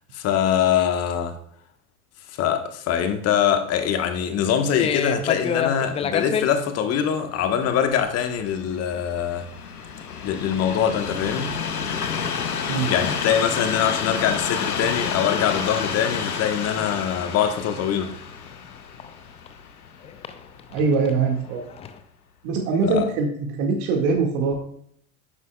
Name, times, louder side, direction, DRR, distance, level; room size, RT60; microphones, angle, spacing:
voice 1, 0.1-1.3 2.4-9.5 10.2-11.5 12.8-18.1 22.8-23.1, left 8 dB, 35° left, 1.3 m, -23 dB
sound 1, 4.8-6.5 7.6-8.0 8.2-8.5 9.0-9.1 9.5-9.6 9.9-10.6 10.9-12.2 12.5-15.8 16.2-19.5 20.0-22.0, left 7 dB, 15° left, 0.5 m, -31 dB
Train, 7.7-20.9 21.6-21.7, left 6 dB, 80° left, 1.0 m, -30 dB
voice 2, 20.7-21.6 22.4-24.5, right 4 dB, 50° right, 2.0 m, -22 dB
11.5 x 9.4 x 2.3 m
figure-of-eight pair, 85°, 45 cm